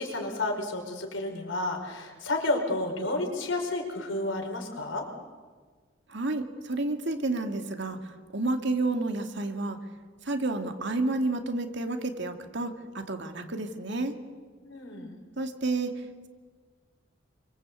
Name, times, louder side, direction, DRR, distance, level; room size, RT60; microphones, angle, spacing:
voice 1, 0.0-5.1 14.6-15.2, left 2 dB, 70° left, 3 dB, 5.2 m, -31 dB
voice 2, 6.1-9.8 10.2-14.2 15.4-16.3, right 2 dB, 60° right, 5 dB, 2.5 m, -30 dB
28.5 x 24.5 x 8.5 m, 1.5 s
head